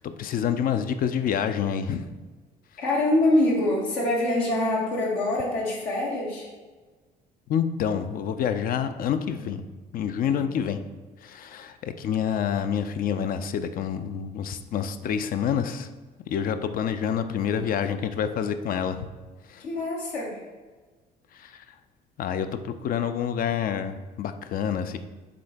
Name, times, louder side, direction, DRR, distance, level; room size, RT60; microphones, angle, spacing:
voice 1, 0.0-2.1 2.7-2.8 7.5-9.7 9.9-10.8 11.2-15.9 16.3-19.1 19.5-19.6 21.3-21.8 22.2-25.0, left 8 dB, 45° left, 10 dB, 0.4 m, -28 dB
voice 2, 2.8-6.5 10.2-10.4 19.6-20.4, left 1 dB, 75° left, -3 dB, 1.1 m, -25 dB
3.7 x 3.7 x 3.3 m, 1.3 s
hypercardioid pair, 55°, 21 cm